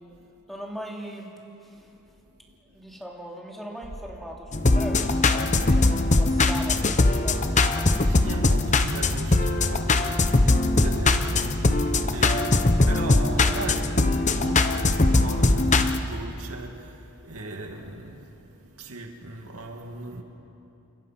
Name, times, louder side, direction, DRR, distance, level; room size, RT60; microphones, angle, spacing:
voice 1, 0.5-1.3 1.6-1.9 2.7-8.0 13.7-13.8, equal, ahead, 3.1 m, -39 dB
voice 2, 1.7-3.0 8.0-20.2, right 2 dB, 80° right, 2.4 m, -38 dB
sound 1, 4.5-16.0, left 2 dB, 35° left, 0.9 m, -21 dB
30.0 x 25.5 x 5.9 m
head